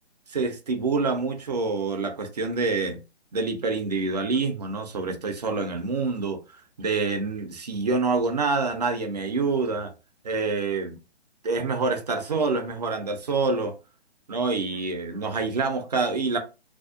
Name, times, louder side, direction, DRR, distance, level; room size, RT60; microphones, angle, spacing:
voice 1, 0.3-3.0 3.3-6.4 6.8-9.9 10.2-11.0 11.4-13.7 14.3-16.4, right 4 dB, 40° right, 0.4 m, -26 dB
2.5 x 2.0 x 2.4 m
figure-of-eight pair, 145°, 33 cm